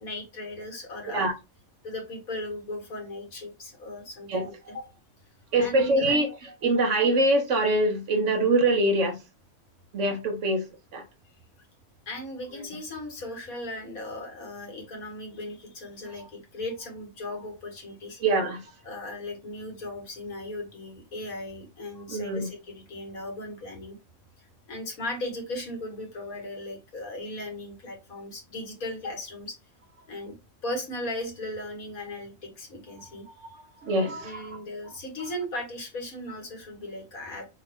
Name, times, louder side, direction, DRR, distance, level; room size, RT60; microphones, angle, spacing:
voice 1, 0.0-1.2 1.8-4.8 5.6-6.1 12.1-18.2 18.8-24.0 24.4-29.6 30.1-30.4 30.6-33.5 34.2-37.5, left 1 dB, 85° left, 2.0 m, -37 dB
voice 2, 4.3-4.8 5.5-6.3 6.6-9.2 9.9-10.7 10.9-11.0 18.2-18.6 22.1-22.5 33.8-34.6, right 2 dB, 60° right, 1.2 m, -24 dB
6.3 x 2.4 x 3.4 m
omnidirectional pair, 1.5 m